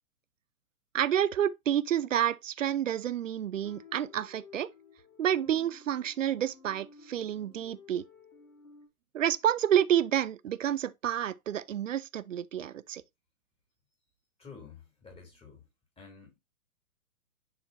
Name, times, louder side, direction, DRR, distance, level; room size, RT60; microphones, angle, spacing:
voice 1, 0.9-4.7 5.2-8.1 9.1-13.0, right 10 dB, 65° right, 0.6 m, -29 dB
sound 1, 3.6-8.9, left 5 dB, 80° left, 2.6 m, -55 dB
voice 2, 14.4-15.6 16.0-16.4, left 5 dB, 15° left, 3.0 m, -50 dB
10.5 x 4.3 x 2.6 m
figure-of-eight pair, 120°, 42 cm